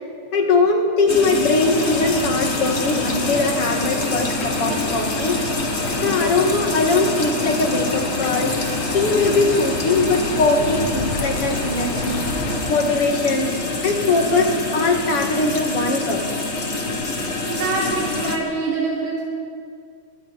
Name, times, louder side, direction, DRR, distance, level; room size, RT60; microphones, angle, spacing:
voice 1, 0.3-5.4 5.7-8.6 8.9-12.3 12.7-13.5 13.8-16.2, left 3 dB, 50° left, 3 dB, 2.8 m, -21 dB
sound 1, 1.1-18.4, left 2 dB, 30° left, 1.4 m, -26 dB
sound 2, 1.6-12.6, left 2 dB, 85° left, 4.2 m, -31 dB
voice 2, 17.2-19.2, right 3 dB, 90° right, -4 dB, 3.7 m, -25 dB
27.0 x 23.0 x 4.2 m, 2.1 s
omnidirectional pair, 3.5 m